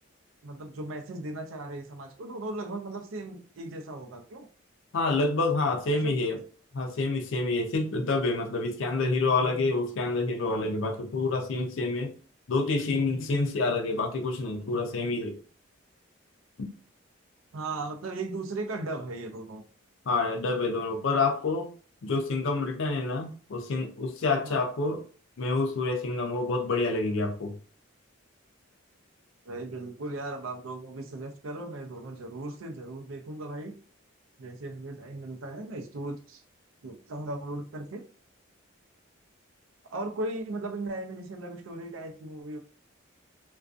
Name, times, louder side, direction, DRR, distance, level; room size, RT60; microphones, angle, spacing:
voice 1, 0.4-4.5 5.9-6.1 17.5-19.6 24.4-24.6 29.5-33.8 34.4-36.4 36.8-38.0 39.9-42.6, right 2 dB, 80° right, 0.5 m, -37 dB
voice 2, 4.9-6.4 6.7-12.1 12.5-15.4 20.1-21.7 22.0-25.0 25.4-27.5, left 3 dB, 70° left, 0.4 m, -28 dB
2.5 x 2.2 x 2.4 m
head